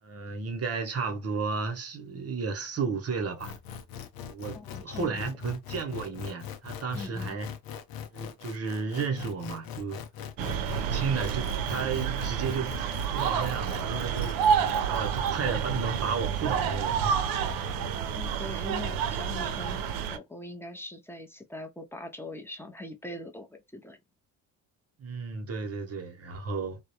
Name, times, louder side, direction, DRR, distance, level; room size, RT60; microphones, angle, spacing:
voice 1, 0.0-3.6 4.3-7.5 8.1-10.0 10.7-12.8 13.1-17.2 25.0-26.8, right 5 dB, 40° right, 0.8 m, -33 dB
sound 1, 3.4-18.3, left 8 dB, 65° left, 0.6 m, -42 dB
voice 2, 4.5-5.2 6.9-7.4 18.1-24.0, left 2 dB, 5° left, 0.5 m, -41 dB
sound 2, 10.4-20.2, right 7 dB, 65° right, 0.5 m, -29 dB
2.3 x 2.0 x 2.8 m
supercardioid pair, 85°, 39 cm